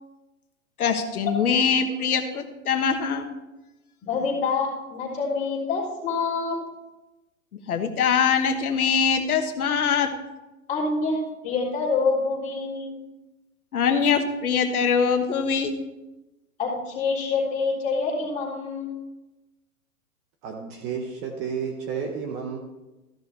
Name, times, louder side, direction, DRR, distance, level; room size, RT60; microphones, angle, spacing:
voice 1, 0.8-3.2 7.7-10.1 13.7-15.8, left 6 dB, 80° left, 6 dB, 1.3 m, -23 dB
voice 2, 4.0-6.6 10.7-11.2 11.4-12.9 16.6-18.9, left 4 dB, 15° left, -6 dB, 3.7 m, -26 dB
voice 3, 20.4-22.6, right 6 dB, 25° right, 3 dB, 0.8 m, -31 dB
14.0 x 6.5 x 4.2 m, 1.0 s
hypercardioid pair, 145°, 44 cm